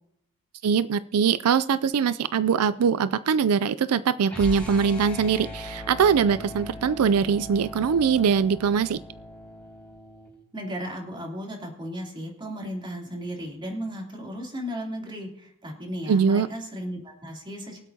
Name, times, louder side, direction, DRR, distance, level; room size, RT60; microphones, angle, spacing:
voice 1, 0.6-9.0 16.1-16.5, right 6 dB, 80° right, 15 dB, 0.4 m, -22 dB
sound 1, 4.3-10.3, equal, 10° left, 5.2 m, -39 dB
voice 2, 10.5-17.8, equal, 20° right, -1 dB, 3.1 m, -35 dB
23.5 x 8.2 x 2.8 m, 0.74 s
head